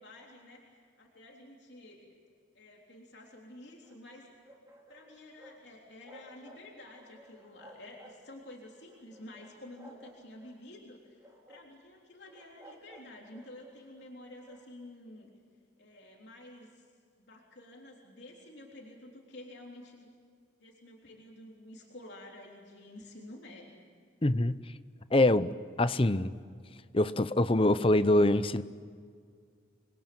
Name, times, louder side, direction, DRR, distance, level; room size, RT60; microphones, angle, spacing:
voice 1, 0.0-2.2 2.5-4.3 4.9-15.3 15.8-16.9 17.2-20.1 20.6-23.8, left 1 dB, 60° left, -1 dB, 3.5 m, -50 dB
sound 1, 3.6-5.6 5.9-6.6 6.9-8.4 8.9-10.6 11.1-11.7 12.3-14.7, equal, 15° right, 3.1 m, -56 dB
voice 2, 24.2-24.6 25.1-26.3 26.9-28.6, left 1 dB, 30° left, 13 dB, 0.7 m, -25 dB
28.0 x 22.0 x 7.8 m, 2.1 s
head